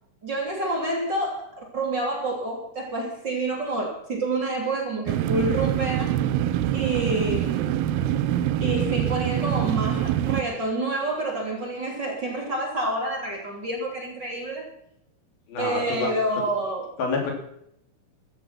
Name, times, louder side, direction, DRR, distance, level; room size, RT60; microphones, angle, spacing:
voice 1, 0.2-6.2 6.7-7.8 8.6-14.7 15.6-16.9, right 2 dB, 30° right, 0 dB, 3.4 m, -28 dB
sound 1, 5.1-10.4, right 11 dB, 85° right, 2.7 m, -25 dB
voice 2, 15.5-16.1 17.0-17.3, left 3 dB, 70° left, 2 dB, 5.0 m, -27 dB
15.5 x 13.0 x 5.9 m, 0.72 s
omnidirectional pair, 4.4 m